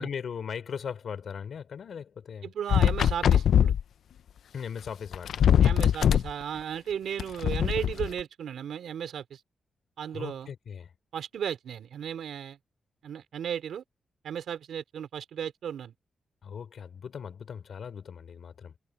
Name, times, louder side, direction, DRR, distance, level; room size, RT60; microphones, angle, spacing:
voice 1, 0.0-2.5 4.5-6.0 10.1-10.9 16.4-18.7, left 7 dB, 65° left, 4.0 m, -39 dB
voice 2, 2.4-3.7 5.6-9.4 10.0-10.5 11.1-12.6 13.0-13.8 14.2-15.9, right 8 dB, 90° right, 3.9 m, -35 dB
sound 1, 2.7-3.8 4.9-5.0 5.1-6.3 7.2-8.1, left 9 dB, 85° left, 0.6 m, -22 dB
wide cardioid pair, 110°, 0 cm